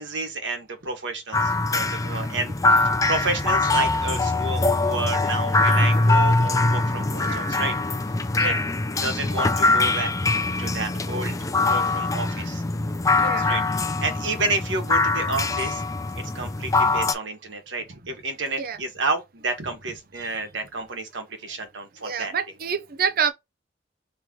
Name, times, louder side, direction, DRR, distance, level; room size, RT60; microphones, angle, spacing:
voice 1, 0.0-7.7 8.4-8.6 9.0-10.3 10.6-11.4 11.7-12.6 13.2-15.8 16.2-22.3, right 3 dB, 75° right, 1.3 m, -30 dB
sound 1, 1.3-17.1, left 3 dB, 20° left, 0.4 m, -23 dB
voice 2, 7.2-7.6 8.4-8.6 13.2-13.5 18.6-18.8 20.2-20.3 22.0-23.3, right 7 dB, 55° right, 0.6 m, -28 dB
3.7 x 3.1 x 2.8 m
head